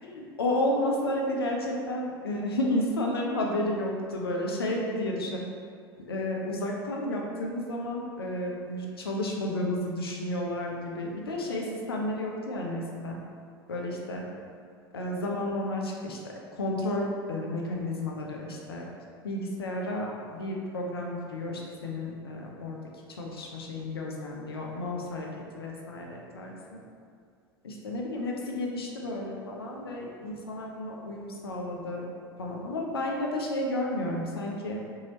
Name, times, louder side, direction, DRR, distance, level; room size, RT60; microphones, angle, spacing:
voice 1, 0.0-5.4 6.0-13.2 13.7-14.3 14.9-18.8 19.2-22.8 23.1-25.3 25.5-26.8 27.6-32.0 32.4-34.8, left 1 dB, 75° left, -1 dB, 0.5 m, -32 dB
2.7 x 2.7 x 2.8 m, 2.2 s
figure-of-eight pair, 70°, 13 cm